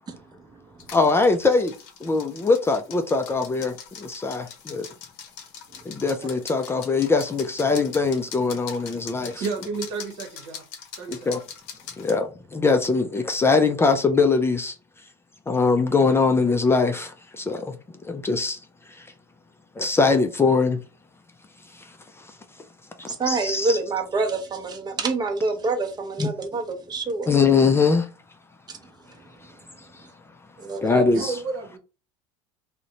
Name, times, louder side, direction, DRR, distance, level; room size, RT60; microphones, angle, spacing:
sound 1, 0.8-12.2, left 7 dB, 70° left, 0.7 m, -42 dB
voice 1, 0.9-1.7 2.0-4.9 5.9-9.4 11.3-11.4 12.0-14.8 15.5-17.8 18.0-18.6 18.9-19.1 19.8-20.8 21.7-22.3 23.0-23.8 26.2-26.3 27.3-28.1 29.9-30.1 30.8-31.3, left 4 dB, 15° left, 0.3 m, -22 dB
voice 2, 9.3-10.6 11.0-11.3 31.1-31.8, right 4 dB, 65° right, 0.9 m, -31 dB
voice 3, 23.1-27.3 30.6-31.0, right 3 dB, 25° right, 0.7 m, -26 dB
2.5 x 2.1 x 2.8 m
hypercardioid pair, 85°, 15 cm